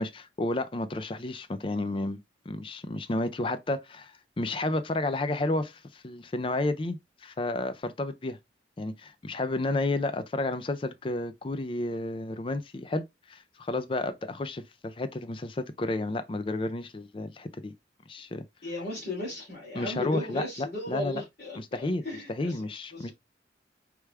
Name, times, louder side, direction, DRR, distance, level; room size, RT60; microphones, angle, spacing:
voice 1, 0.0-2.2 2.5-8.4 8.8-17.7 18.1-18.4 19.7-21.2 21.6-23.1, left 2 dB, 30° left, 0.4 m, -31 dB
voice 2, 18.6-22.6 22.9-23.1, left 2 dB, 50° left, 2.7 m, -36 dB
4.6 x 3.4 x 3.2 m
head